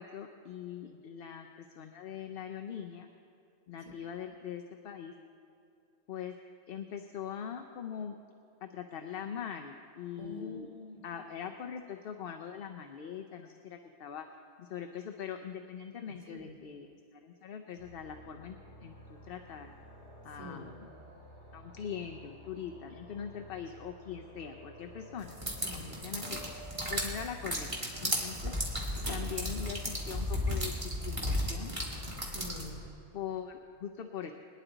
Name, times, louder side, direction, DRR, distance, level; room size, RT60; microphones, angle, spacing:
voice 1, 0.0-3.1 3.7-5.1 6.1-6.3 6.7-8.2 8.6-10.7 11.0-14.3 14.6-16.9 17.1-19.7 20.2-20.7 21.5-26.6 26.9-28.5 29.1-31.7 33.1-34.3, left 8 dB, 60° left, 5 dB, 0.8 m, -42 dB
voice 2, 10.2-11.0 16.0-16.6 20.3-20.8 25.6-26.1 28.8-29.1 32.3-32.9, left 1 dB, 40° left, -2 dB, 2.1 m, -47 dB
sound 1, 17.8-32.9, equal, 80° left, 2.7 m, -52 dB
sound 2, 25.3-32.7, equal, 25° right, 1.9 m, -34 dB
22.0 x 10.0 x 4.0 m, 2.6 s
omnidirectional pair, 1.2 m